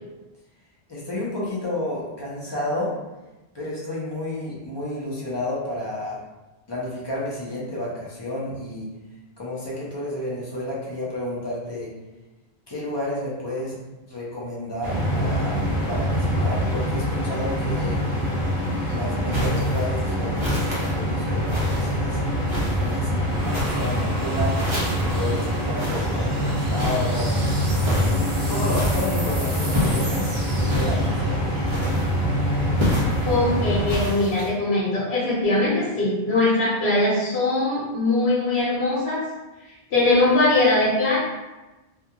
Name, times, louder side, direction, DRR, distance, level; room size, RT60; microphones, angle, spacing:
voice 1, 0.9-2.9 3.5-6.2 6.7-8.9 9.4-11.9 12.7-13.8 14.0-18.0 18.8-22.2 22.8-24.6 25.0-28.2 28.5-31.5, left 1 dB, 30° left, -6 dB, 0.6 m, -31 dB
sound 1, 14.8-33.9, equal, ahead, 1.1 m, -24 dB
sound 2, 19.3-19.8 20.4-20.9 21.5-22.0 22.5-23.0 23.5-24.0 24.5-25.2 25.8-26.2 26.8-27.3 27.8-28.2 28.7-29.2 29.7-30.1 30.7-31.1 31.7-32.2 32.8-33.3 33.9-34.5, left 1 dB, 35° right, 0.5 m, -29 dB
sound 3, 22.3-33.0, right 1 dB, 60° right, 0.8 m, -38 dB
voice 2, 33.3-39.2 39.7-41.2, left 2 dB, 75° left, -8 dB, 1.0 m, -21 dB
2.3 x 2.2 x 2.8 m, 1.1 s
omnidirectional pair, 1.1 m